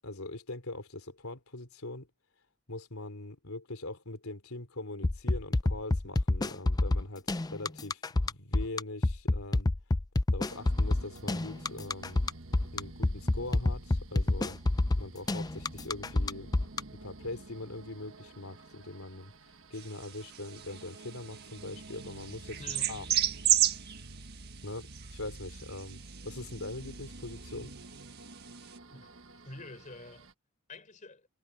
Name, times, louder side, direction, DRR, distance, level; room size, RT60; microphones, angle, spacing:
voice 1, 0.0-2.1 2.7-9.7 10.3-12.2 12.7-14.6 15.0-16.5 16.9-19.3 19.7-22.6 22.9-23.1 24.6-27.7, left 2 dB, 80° left, 3.2 m, -42 dB
sound 1, 5.0-16.8, left 2 dB, 20° left, 0.4 m, -27 dB
sound 2, 10.4-30.3, right 2 dB, 65° right, 1.5 m, -49 dB
sound 3, 19.7-28.8, right 12 dB, 45° right, 1.5 m, -34 dB
voice 2, 22.6-23.0 28.9-29.1 29.4-30.3 30.7-31.3, left 2 dB, 35° left, 4.1 m, -47 dB
head